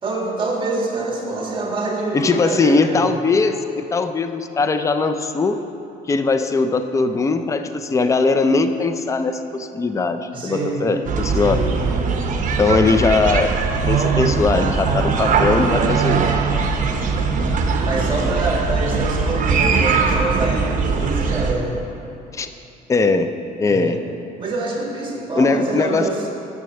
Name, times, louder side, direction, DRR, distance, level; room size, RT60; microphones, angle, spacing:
voice 1, 0.0-3.2 10.3-11.0 11.4-12.1 17.8-21.8 23.7-24.0 24.4-26.3, right 2 dB, 30° right, -2 dB, 2.0 m, -26 dB
voice 2, 2.1-3.6 3.9-5.6 6.1-11.6 12.6-13.5 13.8-16.3 22.3-22.5 22.9-23.3 23.6-24.0 25.4-26.1, left 4 dB, 20° left, 9 dB, 0.4 m, -20 dB
sound 1, 11.1-21.5, right 5 dB, 50° right, 0.9 m, -20 dB
7.4 x 6.2 x 6.9 m, 2.8 s
cardioid pair, 110°, 17 cm